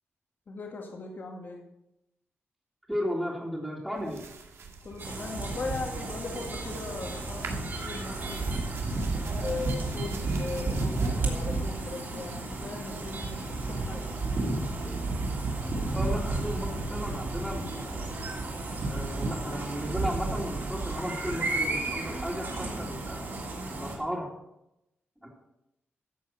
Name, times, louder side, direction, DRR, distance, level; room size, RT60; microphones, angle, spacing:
voice 1, 0.5-1.6 4.8-8.4 9.3-14.1, left 3 dB, 45° left, 1 dB, 2.1 m, -39 dB
voice 2, 2.9-4.3 15.9-18.1 18.9-23.2 23.8-24.3 25.2-25.3, equal, 5° right, -6 dB, 2.5 m, -34 dB
sound 1, 4.0-13.9, right 5 dB, 90° right, 2.0 m, -46 dB
sound 2, 5.0-23.9, right 2 dB, 50° right, 3.3 m, -32 dB
13.5 x 7.8 x 5.8 m, 0.86 s
wide cardioid pair, 160°, 4 cm